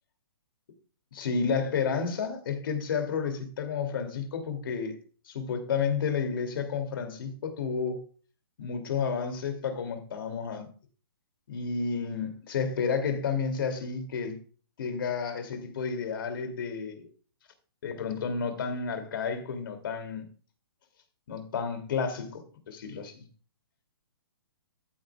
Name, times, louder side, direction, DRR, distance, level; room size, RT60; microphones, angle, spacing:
voice 1, 1.1-5.0 5.3-8.0 8.6-10.7 11.5-14.4 14.8-17.1 17.8-20.3 21.3-23.3, left 5 dB, 60° left, 2.5 m, -31 dB
14.0 x 8.4 x 2.3 m
hypercardioid pair, 145°, 13 cm